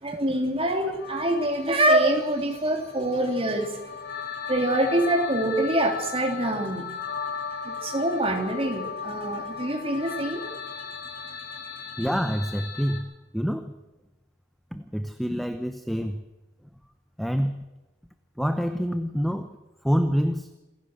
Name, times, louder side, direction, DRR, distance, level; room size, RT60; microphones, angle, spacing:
voice 1, 0.0-3.8 4.5-6.9 7.6-10.5 11.2-11.4, right 1 dB, 30° right, 3 dB, 3.3 m, -25 dB
sound 1, 1.0-13.0, left 6 dB, 55° left, 4.5 m, -37 dB
voice 2, 12.0-13.7 14.7-16.2 17.2-17.6 18.4-19.5 19.8-20.5, equal, ahead, 8 dB, 0.9 m, -27 dB
27.5 x 15.5 x 6.5 m, 1.1 s
head